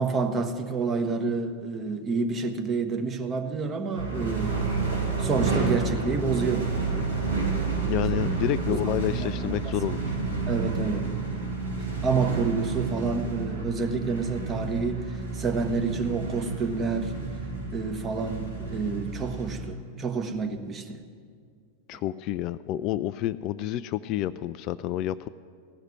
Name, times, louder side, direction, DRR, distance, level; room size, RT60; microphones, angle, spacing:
voice 1, 0.0-4.5 5.0-6.7 8.1-8.2 8.7-8.8 9.2-9.7 10.5-11.1 12.0-15.1 15.3-17.1 17.7-21.0, right 4 dB, 25° right, 5 dB, 1.2 m, -29 dB
sound 1, 3.9-19.7, right 4 dB, 85° right, 2.4 m, -30 dB
voice 2, 7.8-10.0 21.9-25.3, left 13 dB, 40° left, 15 dB, 0.3 m, -29 dB
16.0 x 6.4 x 9.9 m, 2.1 s
figure-of-eight pair, 90°, 0 cm